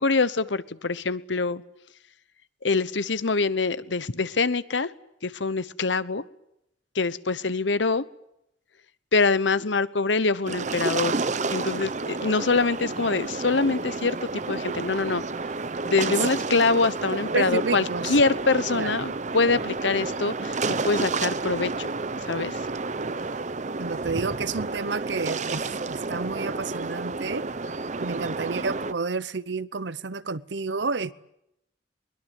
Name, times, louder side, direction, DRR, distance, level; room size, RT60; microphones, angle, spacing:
voice 1, 0.0-1.6 2.6-4.9 5.2-6.2 6.9-8.1 9.1-11.1 11.5-15.2 15.8-20.6 20.8-21.9 22.2-22.7, left 3 dB, 85° left, 1.1 m, -24 dB
sound 1, 10.4-28.9, right 3 dB, 40° right, 0.9 m, -30 dB
voice 2, 17.3-18.1 18.7-18.9 23.8-27.4 28.0-31.1, right 4 dB, 75° right, 0.9 m, -30 dB
22.5 x 21.5 x 9.2 m
head